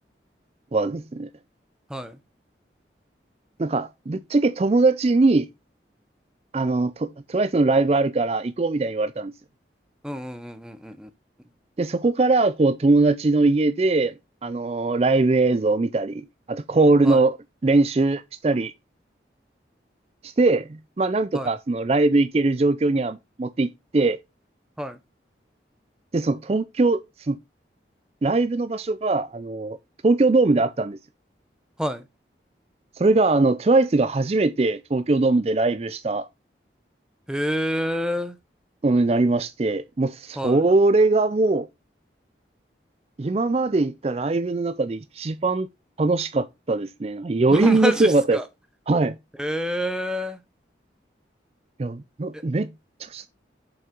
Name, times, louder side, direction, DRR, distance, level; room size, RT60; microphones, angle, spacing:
voice 1, 0.7-1.3 3.6-5.5 6.5-9.3 11.8-14.1 14.4-17.4 17.6-18.7 20.2-20.7 21.0-23.7 23.9-24.2 26.1-27.4 28.2-29.8 30.0-31.0 33.0-36.3 38.8-41.7 43.2-45.7 46.0-48.4 48.9-49.1 51.8-52.7 53.0-53.3, right 3 dB, 35° right, 0.4 m, -21 dB
voice 2, 10.0-11.1 17.0-17.2 21.3-21.5 24.8-25.0 31.8-32.0 37.3-38.4 40.4-40.6 47.5-48.5 49.4-50.4 52.3-52.4, equal, 5° right, 0.8 m, -28 dB
7.2 x 5.4 x 5.2 m
head